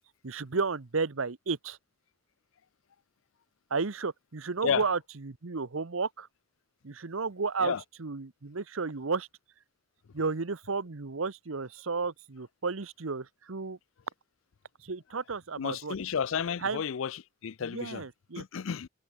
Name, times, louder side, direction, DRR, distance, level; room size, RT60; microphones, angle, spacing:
voice 1, 0.2-1.8 3.7-6.3 6.8-7.7 8.0-9.3 10.1-13.8 14.8-15.9 16.6-16.8 17.6-18.4, right 4 dB, 85° right, 1.0 m, -33 dB
voice 2, 15.6-18.0 18.3-18.9, left 7 dB, 80° left, 0.5 m, -32 dB
head